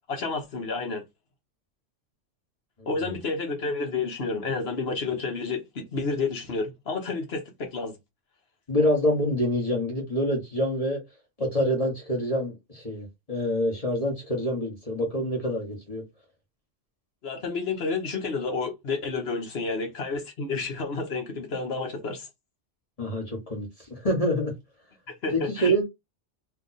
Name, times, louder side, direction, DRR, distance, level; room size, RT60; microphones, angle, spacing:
voice 1, 0.1-1.0 2.9-7.9 17.2-22.3 25.2-25.7, left 4 dB, 55° left, 1.3 m, -30 dB
voice 2, 2.8-3.2 8.7-11.0 11.4-16.0 23.0-24.5 25.3-25.8, equal, 30° left, 1.3 m, -26 dB
3.3 x 2.9 x 4.0 m
omnidirectional pair, 1.3 m